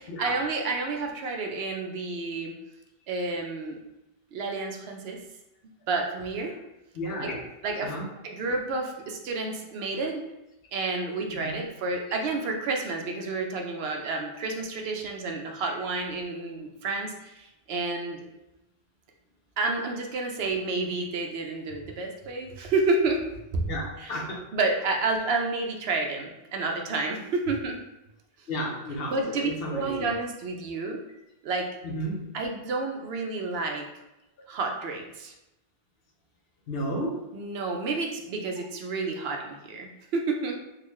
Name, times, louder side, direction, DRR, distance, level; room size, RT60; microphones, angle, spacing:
voice 1, 0.2-2.6 3.1-3.8 4.3-5.2 5.9-6.5 7.2-7.3 7.6-8.0 8.2-10.2 10.7-18.3 19.6-23.2 23.5-23.7 24.0-24.1 24.5-27.8 29.1-31.0 31.4-31.7 32.3-33.9 34.5-35.3 37.3-40.6, right 3 dB, 75° right, 2 dB, 0.8 m, -30 dB
voice 2, 6.9-7.4 7.8-8.1 11.3-11.7 23.6-24.5 28.5-30.1 31.8-32.3 36.7-37.2, equal, 70° left, -1 dB, 0.9 m, -33 dB
3.7 x 2.4 x 3.1 m, 0.92 s
omnidirectional pair, 1.1 m